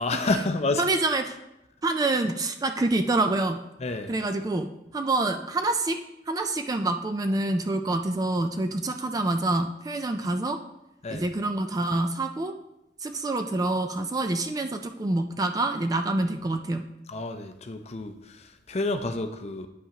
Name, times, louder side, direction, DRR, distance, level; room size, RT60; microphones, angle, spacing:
voice 1, 0.0-0.8 3.8-4.1 11.0-11.3 17.1-19.7, left 2 dB, 35° left, 7 dB, 0.5 m, -29 dB
voice 2, 0.8-1.4 1.8-3.6 4.1-6.0 6.3-10.6 11.1-12.5 13.0-16.9, right 2 dB, 20° right, 7 dB, 0.3 m, -26 dB
8.7 x 5.4 x 2.9 m, 0.91 s
head